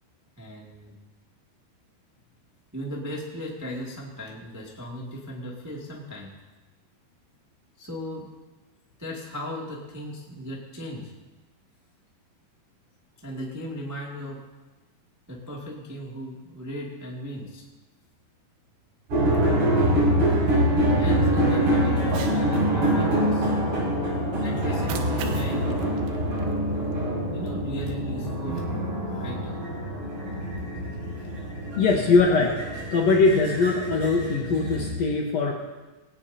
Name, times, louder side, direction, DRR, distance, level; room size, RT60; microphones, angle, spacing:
voice 1, 0.4-0.9 2.7-6.4 7.8-8.3 9.0-11.1 13.2-14.4 15.3-17.6 19.4-19.7 20.0-20.4 21.0-23.5 24.4-25.8 27.3-28.8 29.1-29.6 30.3-30.4 31.1-31.3, equal, 15° right, -4 dB, 0.7 m, -37 dB
sound 1, 19.1-34.9, right 1 dB, 60° right, 8.6 m, -25 dB
Cat, 22.0-22.4 24.6-27.0, right 7 dB, 80° right, 3.2 m, -39 dB
voice 2, 31.8-32.6 32.9-35.5, left 4 dB, 80° left, -1 dB, 1.5 m, -21 dB
19.5 x 17.5 x 2.9 m, 1.2 s
omnidirectional pair, 5.1 m